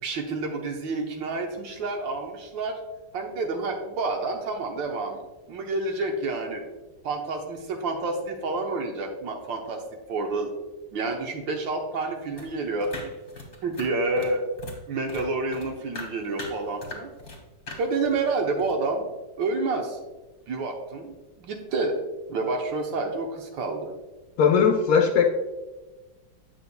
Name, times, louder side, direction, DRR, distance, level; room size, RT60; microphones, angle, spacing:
voice 1, 0.0-2.8 3.1-5.2 5.5-6.6 7.0-9.8 10.1-10.5 10.9-13.1 13.6-14.4 14.9-17.1 17.8-19.1 19.4-20.0 20.5-22.0 22.3-23.9, right 3 dB, 90° right, 3 dB, 1.7 m, -29 dB
sound 1, 12.3-14.8 15.1-17.4 17.7-18.7, left 3 dB, 35° left, 1.3 m, -40 dB
voice 2, 24.4-25.3, left 6 dB, 65° left, 2 dB, 0.9 m, -19 dB
8.9 x 6.6 x 2.2 m, 1.1 s
omnidirectional pair, 1.9 m